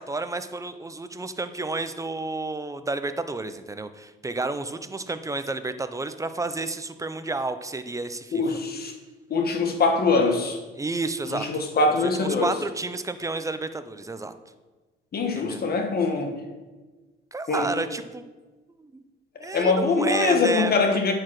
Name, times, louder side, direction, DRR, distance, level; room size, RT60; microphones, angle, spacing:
voice 1, 0.0-8.4 10.8-11.5 12.2-14.3 15.3-15.6 17.3-18.2 18.8-19.0 19.4-20.7, right 3 dB, 15° right, 10 dB, 0.6 m, -31 dB
voice 2, 8.3-8.9 9.3-10.6 11.3-12.5 15.1-16.3 17.5-17.7 19.4-21.1, left 3 dB, 50° left, 4 dB, 1.4 m, -23 dB
9.4 x 4.8 x 6.0 m, 1.3 s
cardioid pair, 90°, 20 cm